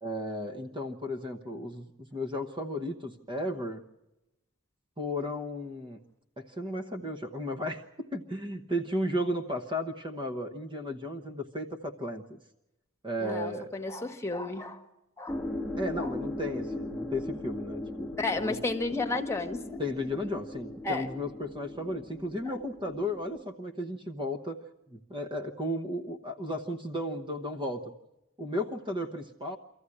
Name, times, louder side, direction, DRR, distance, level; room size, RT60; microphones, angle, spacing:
voice 1, 0.0-1.9 2.1-3.8 5.0-6.0 6.4-12.4 13.0-13.7 15.8-18.1 18.4-18.6 19.8-27.9 28.4-29.6, left 1 dB, 25° right, 5 dB, 1.0 m, -34 dB
voice 2, 13.2-14.8 15.2-15.4 16.0-16.1 18.2-19.8 20.8-21.1 22.4-22.5, left 3 dB, 15° left, 4 dB, 1.5 m, -33 dB
sound 1, 15.3-23.4, left 1 dB, ahead, 1.2 m, -38 dB
24.5 x 14.5 x 9.8 m, 0.95 s
head